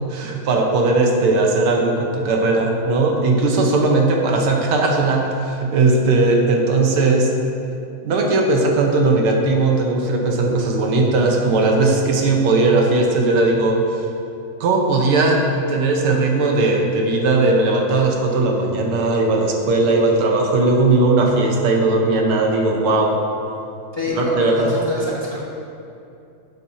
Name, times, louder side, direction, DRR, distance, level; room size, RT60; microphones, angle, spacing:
voice 1, 0.1-7.3 8.0-13.8 14.6-15.4 15.7-23.2 24.1-24.8, right 3 dB, 90° right, 1 dB, 1.9 m, -18 dB
voice 2, 23.9-25.0 25.3-25.4, left 2 dB, 15° left, -7 dB, 1.3 m, -25 dB
12.5 x 8.0 x 2.8 m, 2.7 s
omnidirectional pair, 2.3 m